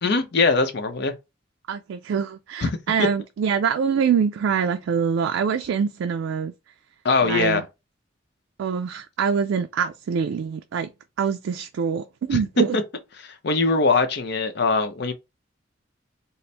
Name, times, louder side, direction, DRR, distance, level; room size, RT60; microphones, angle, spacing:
voice 1, 0.0-1.1 2.6-2.7 7.0-7.6 12.3-12.4 13.2-15.1, left 4 dB, 60° left, 0.7 m, -21 dB
voice 2, 1.7-6.5 7.2-7.6 8.6-10.9 11.2-12.8, right 6 dB, 90° right, 0.3 m, -24 dB
4.2 x 2.0 x 3.3 m
head